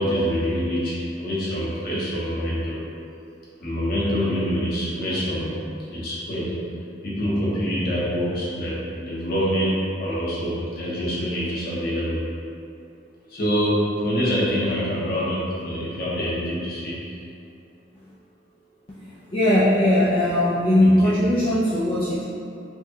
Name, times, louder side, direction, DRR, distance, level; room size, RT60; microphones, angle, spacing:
voice 1, 0.0-2.8 3.6-5.6 5.9-6.6 7.0-12.2 13.3-17.1 20.8-21.3, equal, 55° left, -8 dB, 1.0 m, -25 dB
voice 2, 19.0-22.2, left 1 dB, 30° left, -11 dB, 0.5 m, -19 dB
4.6 x 2.3 x 2.8 m, 2.6 s
head